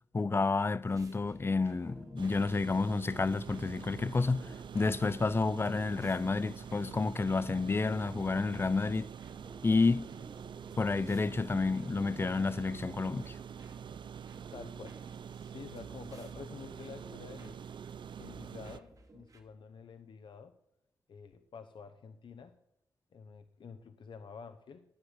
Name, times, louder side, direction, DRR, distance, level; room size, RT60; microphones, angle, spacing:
voice 1, 0.1-4.5 4.7-9.1 9.6-10.1 10.8-13.4, left 3 dB, 25° left, 0.4 m, -30 dB
sound 1, 0.8-19.4, right 2 dB, 40° right, 2.2 m, -56 dB
sound 2, 2.2-18.8, right 8 dB, 65° right, 0.4 m, -46 dB
voice 2, 14.5-15.0 15.5-17.6 18.2-20.6 21.1-22.6 23.1-24.8, left 5 dB, 70° left, 0.8 m, -49 dB
13.5 x 9.6 x 7.2 m
cardioid pair, 85°, 9 cm